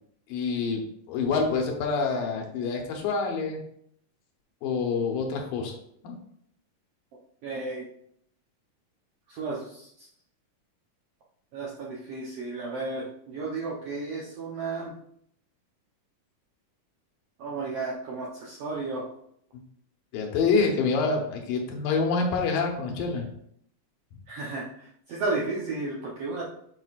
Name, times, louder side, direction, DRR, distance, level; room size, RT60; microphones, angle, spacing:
voice 1, 0.3-0.8 1.1-3.6 4.6-5.7 6.0-6.2 20.1-23.3, left 4 dB, 85° left, 2 dB, 2.7 m, -26 dB
voice 2, 7.4-7.9 9.3-10.1 11.5-14.9 17.4-19.1 24.3-26.4, right 3 dB, 75° right, -4 dB, 1.4 m, -33 dB
8.0 x 5.0 x 2.4 m, 0.69 s
omnidirectional pair, 3.8 m